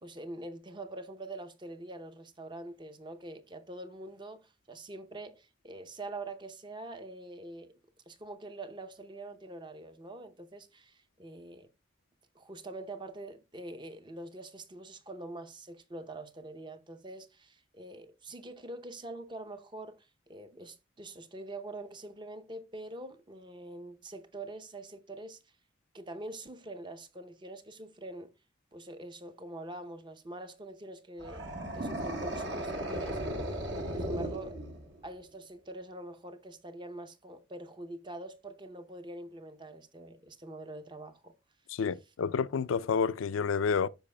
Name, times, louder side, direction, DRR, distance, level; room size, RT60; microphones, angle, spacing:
voice 1, 0.0-7.8 8.1-11.7 12.3-25.5 25.9-28.3 28.7-31.4 31.7-33.2 33.9-34.6 35.0-41.3, right 2 dB, 25° right, 0.6 m, -44 dB
sound 1, 31.2-35.1, right 1 dB, 60° right, 1.4 m, -36 dB
voice 2, 41.7-43.9, left 6 dB, 85° left, 0.4 m, -29 dB
13.5 x 4.9 x 2.2 m
head